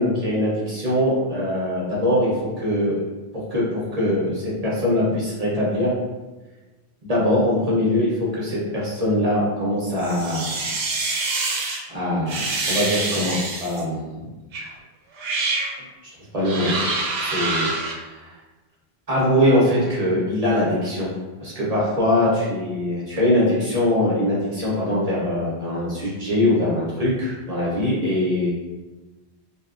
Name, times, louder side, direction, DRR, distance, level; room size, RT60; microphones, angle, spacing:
voice 1, 0.0-3.0 3.3-5.9 7.0-10.6 11.9-14.2 16.3-18.4 19.1-21.1 21.4-28.5, left 1 dB, 45° right, -7 dB, 0.7 m, -22 dB
sound 1, 10.0-11.8 12.3-13.8 14.5-14.7 15.1-15.7 16.4-17.9, right 3 dB, 80° right, 0.8 m, -26 dB
2.7 x 2.2 x 2.4 m, 1.2 s
omnidirectional pair, 1.1 m